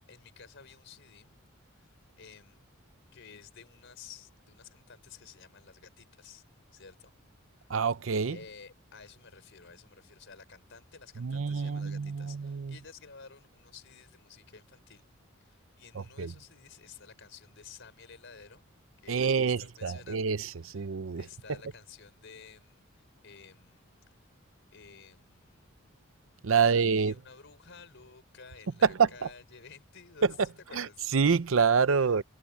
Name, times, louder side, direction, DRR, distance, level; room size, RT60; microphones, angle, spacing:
voice 1, 0.1-1.3 1.7-2.6 3.1-6.4 6.7-7.1 7.5-7.7 8.3-15.1 15.4-18.6 19.0-24.3 24.7-25.7 26.6-30.3 30.7-31.1 31.9-32.2, left 6 dB, 60° left, 4.7 m, -53 dB
voice 2, 7.7-8.4 11.2-12.7 16.0-16.3 19.1-21.3 26.4-27.1 28.8-29.3 30.2-30.3 30.7-32.2, right 5 dB, 70° right, 0.6 m, -27 dB
head